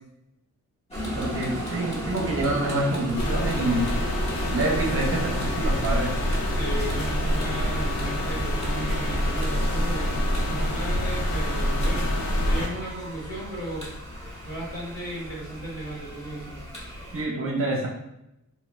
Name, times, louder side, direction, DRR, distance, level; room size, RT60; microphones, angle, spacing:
sound 1, 0.9-17.2, equal, 20° left, 0.8 m, -36 dB
voice 1, 1.2-3.9 4.5-6.1 17.1-17.9, right 2 dB, 40° right, -2 dB, 0.6 m, -27 dB
sound 2, 3.2-12.7, equal, 90° left, 0.8 m, -26 dB
voice 2, 6.5-12.1 12.4-13.9 14.4-16.7, right 1 dB, 45° left, -4 dB, 1.2 m, -35 dB
2.9 x 2.3 x 3.0 m, 0.84 s
wide cardioid pair, 160°, 33 cm